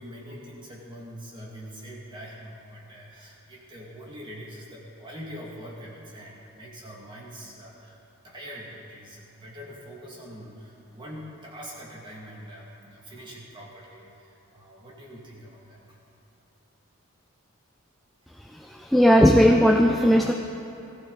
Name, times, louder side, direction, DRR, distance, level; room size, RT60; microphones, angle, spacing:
voice 1, 0.0-8.0 8.2-16.0, equal, 20° right, -5 dB, 2.2 m, -43 dB
voice 2, 18.4-20.3, equal, ahead, 2 dB, 0.4 m, -18 dB
20.0 x 15.0 x 4.1 m, 3.0 s
head